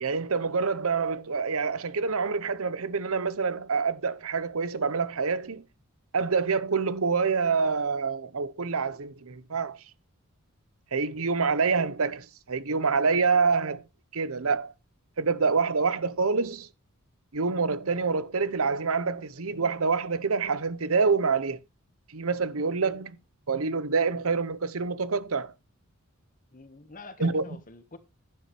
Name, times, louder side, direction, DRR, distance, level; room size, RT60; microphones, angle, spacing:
voice 1, 0.0-5.6 6.1-9.8 10.9-13.8 14.1-14.7 15.2-16.7 17.3-21.6 22.1-23.1 23.5-25.5 27.2-27.4, right 4 dB, 75° right, 0.9 m, -26 dB
voice 2, 26.5-28.0, left 3 dB, 40° left, 1.4 m, -46 dB
11.0 x 9.8 x 3.2 m
head